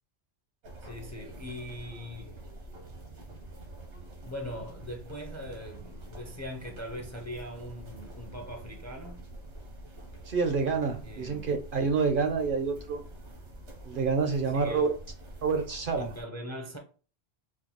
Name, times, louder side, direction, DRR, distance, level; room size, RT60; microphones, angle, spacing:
sound 1, 0.6-16.2, right 2 dB, 85° right, 1.4 m, -46 dB
voice 1, 0.8-2.4 4.2-9.2 11.0-11.4 14.5-14.9 15.9-16.8, equal, 25° left, 0.4 m, -41 dB
voice 2, 10.3-13.0 13.9-14.9 15.4-16.1, right 5 dB, 60° right, 0.6 m, -28 dB
4.4 x 2.3 x 2.8 m
omnidirectional pair, 1.2 m